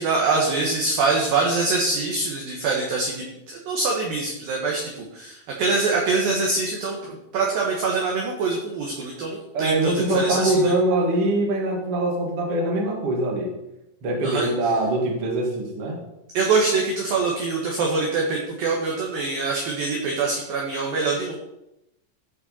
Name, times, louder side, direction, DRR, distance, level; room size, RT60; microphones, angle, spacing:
voice 1, 0.0-3.3 3.7-10.7 14.2-14.7 16.3-21.4, right 3 dB, 70° right, -1 dB, 2.3 m, -24 dB
voice 2, 9.5-13.5 14.0-16.0, right 1 dB, 55° right, 0 dB, 1.6 m, -23 dB
14.0 x 5.5 x 4.2 m, 0.88 s
omnidirectional pair, 5.6 m